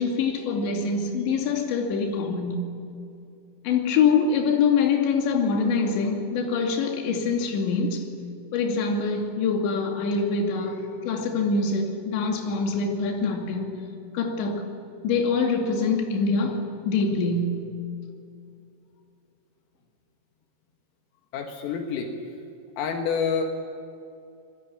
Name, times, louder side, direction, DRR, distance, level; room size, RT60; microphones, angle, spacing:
voice 1, 0.0-2.8 3.6-8.1 8.5-13.7 14.1-14.7 15.0-17.8, left 4 dB, 65° left, 4.5 m, -24 dB
voice 2, 21.3-22.1 22.8-23.4, left 6 dB, 80° left, 4.3 m, -27 dB
26.5 x 21.5 x 8.6 m
omnidirectional pair, 5.9 m